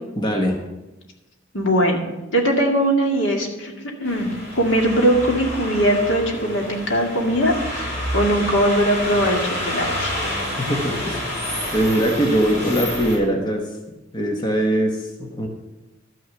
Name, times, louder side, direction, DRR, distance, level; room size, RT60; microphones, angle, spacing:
voice 1, 0.2-0.6 10.5-11.3 11.7-13.6 14.1-15.5, equal, 25° left, 1 dB, 1.2 m, -21 dB
voice 2, 1.5-2.1 2.3-3.7 4.0-10.2, equal, 70° left, 1 dB, 2.1 m, -20 dB
sound 1, 4.0-13.2, left 1 dB, 40° left, 4.9 m, -28 dB
12.5 x 6.3 x 6.9 m, 1.0 s
head